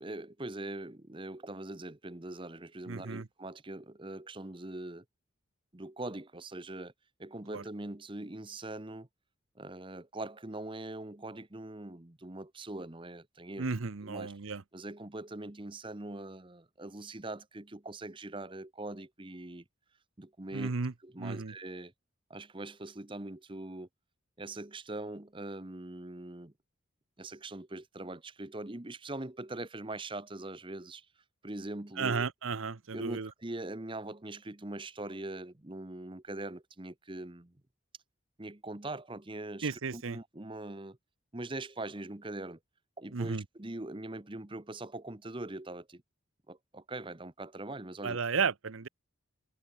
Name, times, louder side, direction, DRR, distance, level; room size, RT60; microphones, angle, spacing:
voice 1, 0.0-5.0 5.7-6.9 7.2-9.1 9.6-13.7 14.0-14.3 14.7-19.6 20.2-20.8 21.0-21.9 22.3-23.9 24.4-26.5 27.2-31.1 31.4-32.3 32.9-37.5 38.4-41.0 41.3-42.6 43.0-46.0 46.5-48.2, right 2 dB, 25° right, 1.0 m, -42 dB
voice 2, 2.9-3.3 7.5-7.6 13.6-14.6 20.5-21.5 32.0-33.3 39.6-40.2 43.1-43.4 48.0-48.9, right 5 dB, 70° right, 0.8 m, -34 dB
head